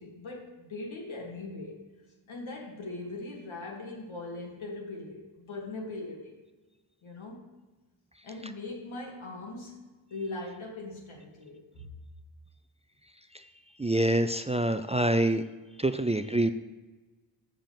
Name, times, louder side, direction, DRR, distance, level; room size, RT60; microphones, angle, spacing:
voice 1, 0.0-1.8 2.3-6.3 7.0-7.5 8.2-9.8 10.1-11.9, left 2 dB, 75° left, -1 dB, 2.6 m, -40 dB
voice 2, 13.8-15.4 15.8-16.5, right 1 dB, 15° right, 9 dB, 0.3 m, -26 dB
7.6 x 7.5 x 6.8 m, 1.2 s
wide cardioid pair, 120°, 48 cm